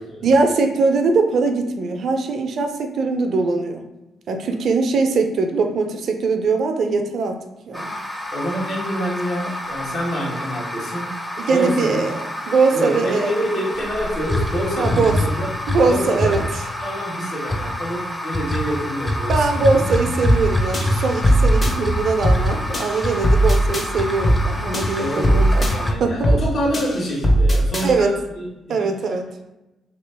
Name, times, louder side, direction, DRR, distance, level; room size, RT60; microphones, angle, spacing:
voice 1, 0.2-3.8 4.3-7.4 7.7-8.0 11.4-12.2 12.5-13.3 14.8-15.4 15.7-16.7 19.3-25.7 26.0-26.2 27.8-28.1 28.7-29.2, right 4 dB, 65° right, 5 dB, 0.5 m, -21 dB
sound 1, 7.7-25.9, left 1 dB, 5° left, 0.7 m, -26 dB
voice 2, 8.3-11.1 11.5-12.0 12.7-16.3 16.8-19.8 25.0-28.9, equal, 60° left, -5 dB, 1.4 m, -27 dB
sound 2, 20.2-20.5 20.7-21.7 22.2-22.5 22.7-23.9 24.2-24.5 24.7-25.7 26.2-26.5 26.7-27.9, equal, 40° left, 1.1 m, -18 dB
2.9 x 2.8 x 3.4 m, 0.98 s
hypercardioid pair, 50°, 0 cm